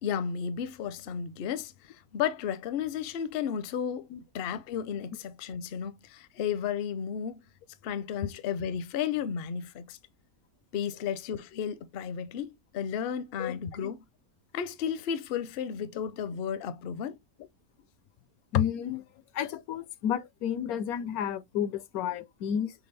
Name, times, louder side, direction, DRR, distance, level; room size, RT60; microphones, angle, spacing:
voice 1, 0.0-4.1 4.3-7.4 7.8-10.0 10.7-14.0 14.5-17.2, left 8 dB, 60° left, 0.6 m, -33 dB
voice 2, 18.5-19.0 19.3-22.7, left 9 dB, 85° left, 1.1 m, -31 dB
6.0 x 2.4 x 3.2 m
omnidirectional pair, 1.5 m